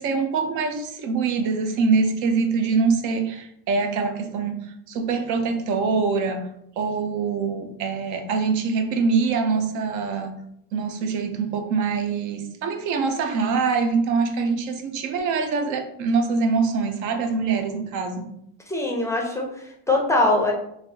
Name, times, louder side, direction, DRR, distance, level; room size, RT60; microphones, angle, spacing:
voice 1, 0.0-6.5 6.8-10.4 10.7-18.3, right 4 dB, 65° right, 6 dB, 0.6 m, -24 dB
voice 2, 18.7-20.5, left 2 dB, 10° left, 0 dB, 0.5 m, -22 dB
3.2 x 2.6 x 2.7 m, 0.75 s
cardioid pair, 125°, 32 cm